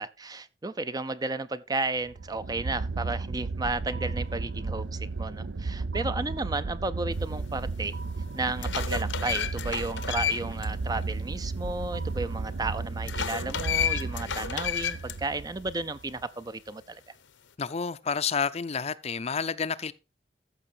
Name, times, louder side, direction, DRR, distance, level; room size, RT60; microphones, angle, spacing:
voice 1, 0.0-7.9 8.3-17.0, right 3 dB, 20° right, 0.5 m, -33 dB
sound 1, 2.1-16.2, right 3 dB, 75° right, 0.6 m, -34 dB
sound 2, 7.7-7.8 8.3-10.7 11.0-11.1 13.0-15.2, left 9 dB, 85° left, 1.0 m, -31 dB
voice 2, 17.6-19.9, left 6 dB, 35° left, 0.5 m, -30 dB
14.0 x 6.5 x 4.4 m
head